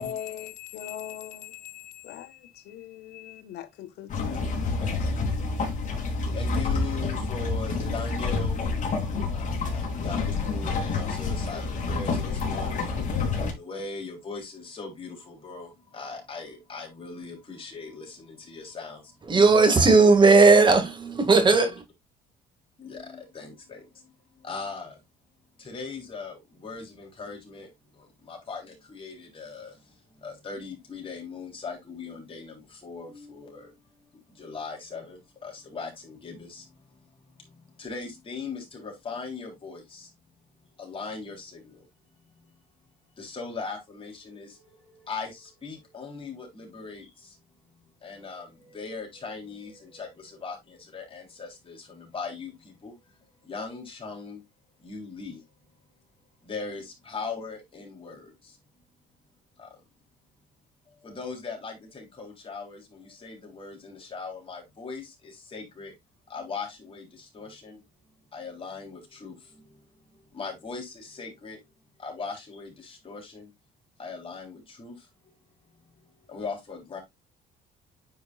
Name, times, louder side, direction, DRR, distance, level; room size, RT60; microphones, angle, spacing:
voice 1, 0.0-5.1, left 10 dB, 80° left, 1.2 m, -40 dB
sound 1, 4.1-13.5, left 4 dB, 50° left, 3.1 m, -28 dB
voice 2, 5.6-8.6 9.3-12.9 13.2-19.2 19.7-19.9 22.8-25.0 25.6-40.1 40.8-41.9 42.4-42.5 43.2-47.4 48.0-54.4 54.8-55.4 56.4-58.6 59.6-59.8 60.9-66.0 66.3-71.6 72.0-73.5 74.0-75.3 76.0-77.0, left 4 dB, 30° left, 3.7 m, -40 dB
voice 3, 19.3-21.8, right 3 dB, 25° right, 2.1 m, -17 dB
9.4 x 5.0 x 2.5 m
cardioid pair, 110°, 17 cm